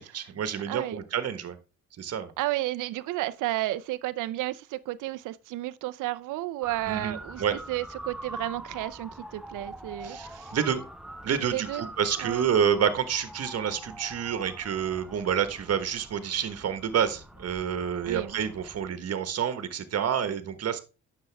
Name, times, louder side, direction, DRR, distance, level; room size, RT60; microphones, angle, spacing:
voice 1, 0.0-1.6 2.0-2.3 6.9-7.5 10.0-10.8 11.2-20.8, right 8 dB, 55° right, 1.3 m, -28 dB
voice 2, 0.7-1.0 2.4-10.6 11.4-11.9 12.2-12.5 18.0-18.4, right 16 dB, 90° right, 0.6 m, -32 dB
Motor vehicle (road) / Siren, 6.6-18.9, right 1 dB, ahead, 0.8 m, -44 dB
9.8 x 6.7 x 3.4 m
cardioid pair, 90°, 30 cm